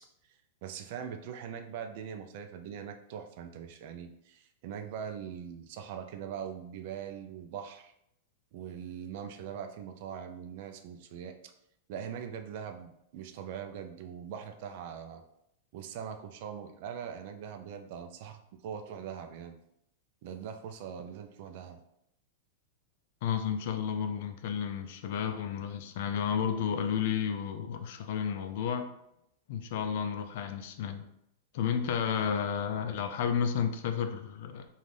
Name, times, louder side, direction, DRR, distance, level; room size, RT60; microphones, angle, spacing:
voice 1, 0.6-7.9 8.5-11.5 11.9-15.2 15.7-19.6 20.2-21.8, right 8 dB, 55° right, 6 dB, 0.3 m, -42 dB
voice 2, 23.2-28.9 29.5-31.1 31.5-34.7, left 7 dB, 60° left, 7 dB, 0.3 m, -32 dB
2.5 x 2.3 x 3.3 m, 0.77 s
supercardioid pair, 140°, 0 cm